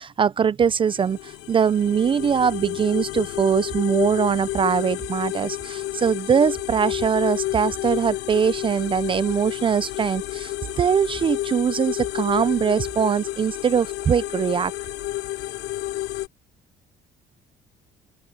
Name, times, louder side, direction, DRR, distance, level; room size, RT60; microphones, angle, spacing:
voice 1, 0.0-14.7, right 7 dB, 30° right, 0.4 m, -22 dB
sound 1, 0.9-16.3, left 15 dB, 85° left, 2.7 m, -30 dB
open air
cardioid pair, 110°, 17 cm